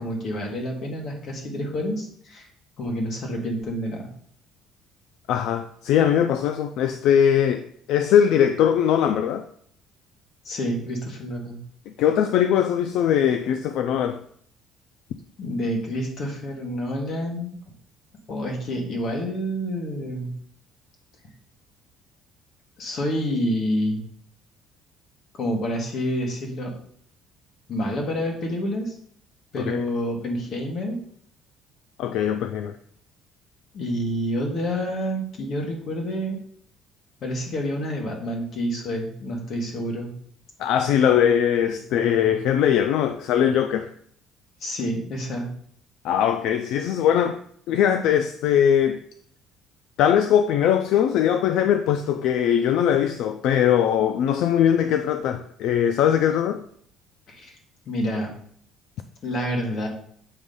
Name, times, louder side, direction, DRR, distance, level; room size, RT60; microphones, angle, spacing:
voice 1, 0.0-2.5 2.8-4.1 10.4-11.6 15.4-17.5 18.3-20.3 22.8-24.0 25.3-26.7 27.7-29.0 29.5-31.0 33.7-36.4 37.2-40.1 41.6-42.3 44.6-45.5 57.3-57.6 57.8-58.3 59.2-59.9, equal, 40° left, 1.6 m, -28 dB
voice 2, 5.3-9.5 12.0-14.2 29.6-29.8 32.0-32.8 40.6-43.9 46.0-47.4 47.7-49.0 50.0-56.6, left 9 dB, 60° left, 0.4 m, -21 dB
8.2 x 3.1 x 5.3 m
cardioid pair, 175°, 0 cm